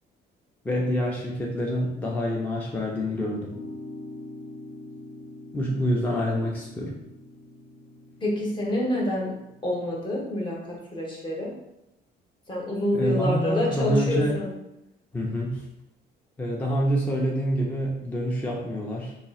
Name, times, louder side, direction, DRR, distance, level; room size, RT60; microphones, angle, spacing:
voice 1, 0.6-3.6 5.5-7.0 12.9-14.4 15.1-15.6 16.4-19.1, equal, 10° left, -2 dB, 0.4 m, -26 dB
sound 1, 3.5-9.9, left 2 dB, 55° left, 0.8 m, -44 dB
voice 2, 8.2-9.4 9.6-11.5 12.5-14.5, left 1 dB, 25° left, -2 dB, 0.8 m, -27 dB
2.8 x 2.4 x 4.0 m, 0.89 s
cardioid pair, 155°, 18 cm